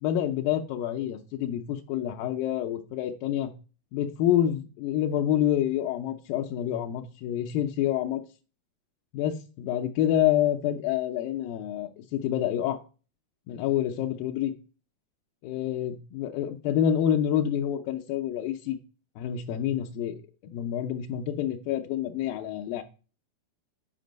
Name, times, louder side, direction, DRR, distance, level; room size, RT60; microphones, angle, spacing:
voice 1, 0.0-3.5 3.9-8.2 9.1-12.8 13.5-14.5 15.4-18.8 19.2-22.8, left 11 dB, 85° left, 3 dB, 2.0 m, -27 dB
8.5 x 5.3 x 5.1 m, 0.35 s
omnidirectional pair, 4.8 m